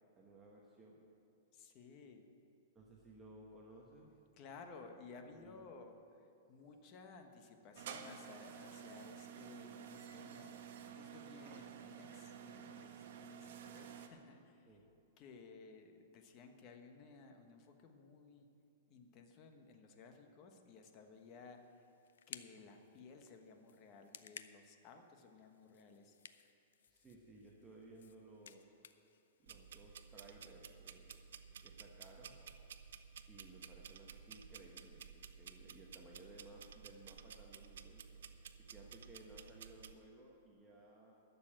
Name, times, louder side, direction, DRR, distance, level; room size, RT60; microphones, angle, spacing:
voice 1, 0.1-1.1 2.7-4.1 5.2-5.8 14.7-14.8 26.9-28.7 29.4-31.3 31.6-32.3 33.3-38.2 38.6-41.1, right 2 dB, 10° right, -3 dB, 1.1 m, -59 dB
voice 2, 1.5-2.2 4.4-14.7 15.2-18.5 18.9-21.6 22.3-26.2, left 4 dB, 30° left, 5 dB, 1.1 m, -57 dB
sound 1, 7.8-14.1, right 8 dB, 60° right, 1.1 m, -51 dB
sound 2, 21.1-30.3, left 8 dB, 90° left, 0.5 m, -59 dB
sound 3, 29.5-39.9, right 7 dB, 85° right, 0.6 m, -54 dB
12.0 x 6.9 x 8.9 m, 2.7 s
hypercardioid pair, 155°, 0 cm